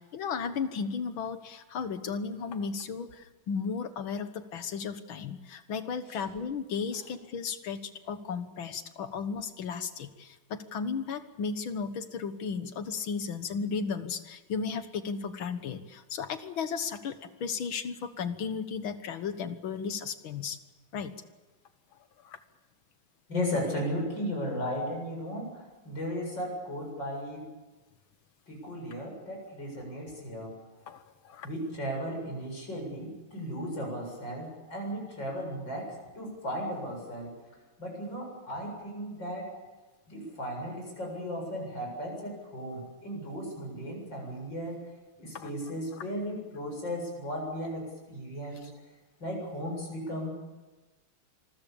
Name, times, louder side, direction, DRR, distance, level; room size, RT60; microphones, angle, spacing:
voice 1, 0.0-20.6 20.9-21.1 22.2-22.4 30.9-31.5 45.3-45.5, left 5 dB, 80° left, 10 dB, 2.1 m, -35 dB
voice 2, 23.3-27.5 28.5-30.5 31.4-37.3 37.8-39.5 40.1-44.8 45.2-48.7 49.2-50.3, equal, 60° left, 0 dB, 8.5 m, -36 dB
26.5 x 21.0 x 7.0 m, 1.2 s
omnidirectional pair, 2.2 m